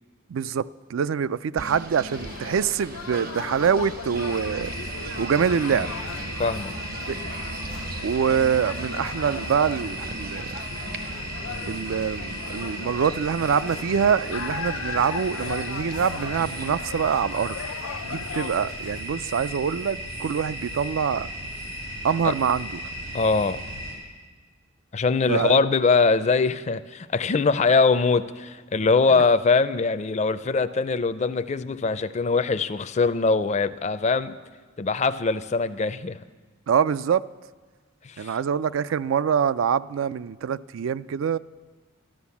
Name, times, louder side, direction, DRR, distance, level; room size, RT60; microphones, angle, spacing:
voice 1, 0.3-4.7 5.2-5.9 7.1-7.2 8.0-10.6 11.6-17.6 18.0-21.3 22.0-22.8 25.3-25.6 36.7-37.2 38.2-41.4, right 7 dB, 70° right, 17 dB, 0.4 m, -25 dB
Singing / Bird, 1.6-16.8, right 2 dB, 45° right, 0.7 m, -40 dB
sound 1, 2.1-19.0, left 7 dB, 85° left, 0.4 m, -38 dB
sound 2, 4.1-23.9, equal, 85° right, 4.6 m, -35 dB
voice 2, 6.4-6.7 23.1-23.6 24.9-34.3 34.8-36.2 38.0-38.3, left 4 dB, 35° left, 12 dB, 0.5 m, -22 dB
13.0 x 12.5 x 7.1 m, 1.4 s
head